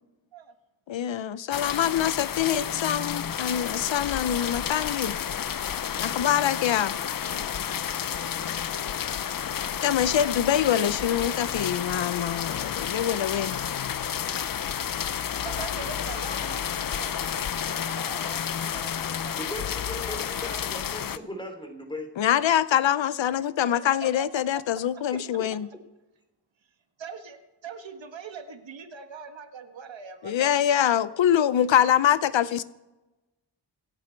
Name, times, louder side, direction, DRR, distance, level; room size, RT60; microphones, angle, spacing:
voice 1, 0.9-5.2 6.0-6.9 9.8-13.6 22.2-25.7 30.2-32.6, left 10 dB, 90° left, 0.7 m, -24 dB
sound 1, 1.5-21.2, left 9 dB, 50° left, 0.6 m, -31 dB
sound 2, 7.3-7.8 8.7-9.2 10.2-10.8 11.5-12.1 12.9-13.0, left 7 dB, 70° left, 1.1 m, -47 dB
voice 2, 15.4-18.9 19.2-19.4 20.0-20.2 23.8-24.1 24.3-24.4 27.0-30.9 31.6-31.9, right 5 dB, 90° right, 1.6 m, -42 dB
voice 3, 18.9-22.1 25.1-25.8, left 1 dB, 10° left, 3.0 m, -39 dB
27.0 x 9.0 x 4.5 m
wide cardioid pair, 115°, 44 cm